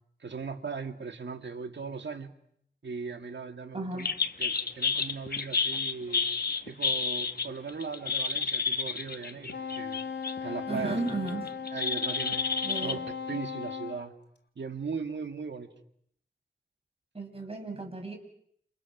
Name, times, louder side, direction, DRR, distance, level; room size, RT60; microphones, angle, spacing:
voice 1, 0.2-2.3 2.8-4.1 4.4-6.3 6.7-10.0 10.4-11.0 11.7-12.5 12.8-13.0 13.3-14.1 14.6-15.7, right 5 dB, 80° right, 6 dB, 2.3 m, -38 dB
voice 2, 3.7-4.1 10.7-11.5 12.6-13.1 17.1-18.2, right 3 dB, 30° right, 2 dB, 6.6 m, -35 dB
sound 1, 4.0-10.4 10.8-12.9, left 4 dB, 60° left, 1.4 m, -30 dB
Wind instrument woodwind instrument, 9.5-14.0, left 6 dB, 75° left, 3.4 m, -37 dB
30.0 x 28.5 x 6.2 m, 0.70 s
wide cardioid pair, 90°, 18 cm